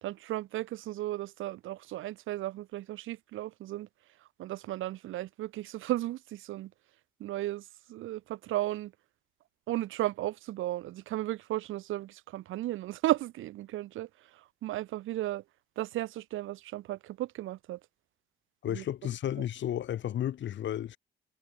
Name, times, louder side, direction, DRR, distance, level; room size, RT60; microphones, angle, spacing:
voice 1, 0.0-3.9 4.4-6.7 7.2-8.9 9.7-15.4 15.8-17.8 18.7-18.8, right 15 dB, 85° right, 1.4 m, -35 dB
voice 2, 18.6-21.0, left 11 dB, 70° left, 3.2 m, -33 dB
cardioid pair, 90°, 20 cm